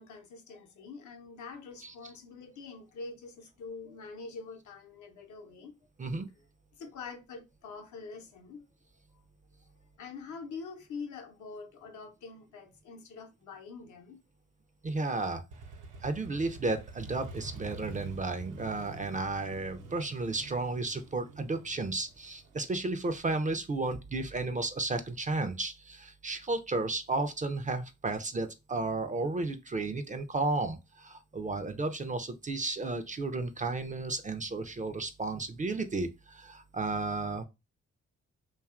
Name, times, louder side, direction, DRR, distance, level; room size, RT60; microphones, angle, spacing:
voice 1, 0.0-5.7 6.8-8.7 9.1-9.2 10.0-14.2, left 4 dB, 65° left, 0.7 m, -45 dB
voice 2, 14.8-15.4 16.0-37.4, right 3 dB, 25° right, 0.4 m, -33 dB
Motorcycle, 15.5-23.1, right 3 dB, 75° right, 0.6 m, -47 dB
2.6 x 2.3 x 2.4 m
supercardioid pair, 45°, 32 cm